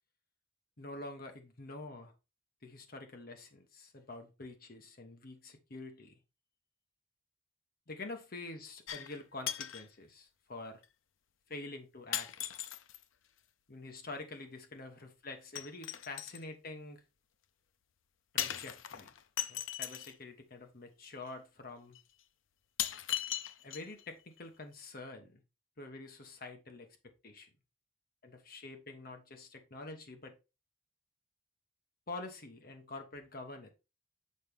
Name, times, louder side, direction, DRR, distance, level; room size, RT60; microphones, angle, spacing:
voice 1, 0.8-2.1 2.6-6.2 7.9-10.8 11.5-12.3 13.7-17.0 18.3-19.1 19.5-22.0 23.6-25.4 25.8-27.5 28.2-30.4 32.1-33.7, left 2 dB, 50° left, 1.1 m, -47 dB
sound 1, 8.9-9.2 9.5-9.9 10.8-10.9 12.1-13.0 15.6-16.4 18.4-20.1 21.3-21.4 21.9-22.0 22.8-24.0 24.4-24.5, left 11 dB, 80° left, 0.5 m, -38 dB
6.5 x 5.1 x 3.4 m
head